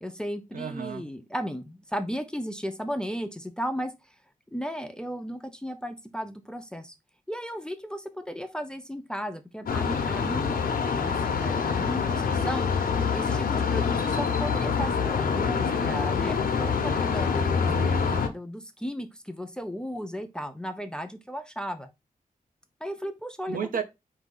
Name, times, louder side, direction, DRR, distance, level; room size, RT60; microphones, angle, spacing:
voice 1, 0.0-4.1 4.5-6.9 7.3-10.6 11.0-12.7 13.1-17.7 18.3-21.9 22.8-23.6, equal, 5° left, 0.4 m, -35 dB
voice 2, 0.5-1.1 17.6-18.2 23.5-23.8, right 6 dB, 70° right, 0.6 m, -33 dB
sound 1, 9.7-18.3, left 6 dB, 80° left, 0.8 m, -26 dB
4.9 x 2.7 x 3.8 m
wide cardioid pair, 175°, 15 cm